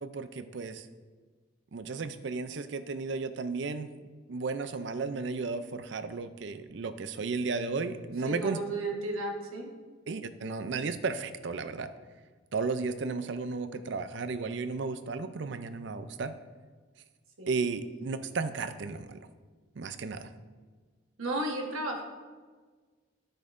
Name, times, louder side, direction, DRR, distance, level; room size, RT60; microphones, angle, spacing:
voice 1, 0.0-0.9 1.7-4.0 4.3-8.6 10.1-11.9 12.5-16.3 17.5-19.2 19.8-20.3, right 4 dB, 60° right, 11 dB, 0.5 m, -34 dB
voice 2, 8.2-9.7 17.4-17.6 21.2-22.0, right 1 dB, 90° right, 1 dB, 1.3 m, -33 dB
12.0 x 6.4 x 2.6 m, 1.4 s
head